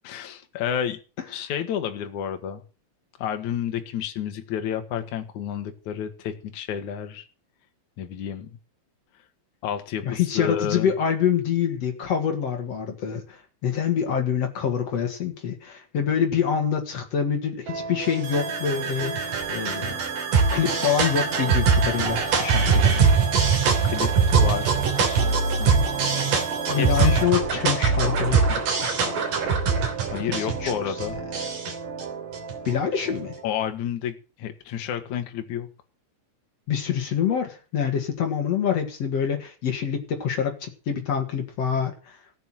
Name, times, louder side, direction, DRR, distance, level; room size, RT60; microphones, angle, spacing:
voice 1, 0.0-1.0 1.3-2.6 3.2-7.2 8.0-8.6 9.6-10.9 23.8-25.9 26.7-27.2 30.0-31.2 33.4-35.7, left 9 dB, 60° left, 7 dB, 2.0 m, -30 dB
voice 2, 10.0-20.0 20.5-23.1 26.7-29.4 30.1-31.0 32.6-33.4 36.7-42.2, left 7 dB, 75° left, 4 dB, 1.4 m, -26 dB
sound 1, 17.7-33.2, right 5 dB, 45° right, 4.1 m, -23 dB
sound 2, 18.2-27.2, right 7 dB, 90° right, 5.4 m, -36 dB
15.5 x 9.3 x 7.6 m, 0.36 s
omnidirectional pair, 5.9 m